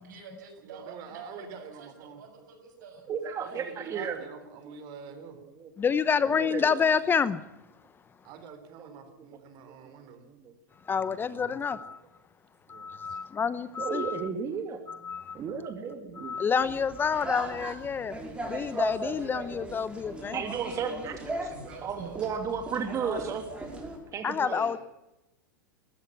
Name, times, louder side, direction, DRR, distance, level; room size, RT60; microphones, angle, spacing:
voice 1, 0.0-3.1 3.4-4.0 13.0-13.2 21.4-22.2, right 5 dB, 70° right, 6.9 m, -48 dB
voice 2, 0.6-2.2 3.4-5.4 8.2-10.3 10.9-11.6 12.7-12.9, right 6 dB, 45° right, 4.4 m, -46 dB
voice 3, 3.1-4.2 5.4-5.7 6.3-6.8 8.8-8.9 10.2-10.5 13.8-14.8 15.3-16.3 20.3-21.2 21.4-21.5 21.8-23.4 24.1-24.7, right 6 dB, 30° right, 2.6 m, -34 dB
voice 4, 5.8-7.4 10.9-12.0 12.7-14.3 14.9-15.4 16.2-18.2 18.5-20.4 24.2-24.8, left 6 dB, 20° left, 0.9 m, -28 dB
sound 1, 16.6-24.0, right 2 dB, 10° right, 5.5 m, -38 dB
21.5 x 13.5 x 9.8 m
hypercardioid pair, 105°, 10 cm